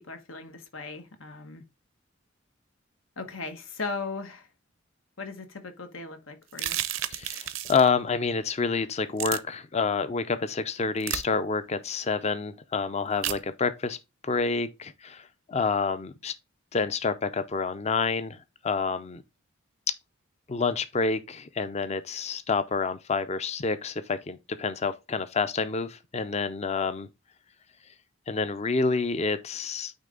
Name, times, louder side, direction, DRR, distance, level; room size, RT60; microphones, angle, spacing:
voice 1, 0.0-1.6 3.2-4.5 5.2-6.8, left 3 dB, 85° left, 1.4 m, -38 dB
sound 1, 6.5-7.9 9.2-9.4 11.0-11.2 13.2-13.4, right 12 dB, 80° right, 0.7 m, -31 dB
voice 2, 7.1-14.0 14.2-16.3 16.7-19.2 20.5-27.1 28.3-29.9, left 4 dB, 35° left, 0.5 m, -28 dB
9.0 x 3.3 x 3.8 m
head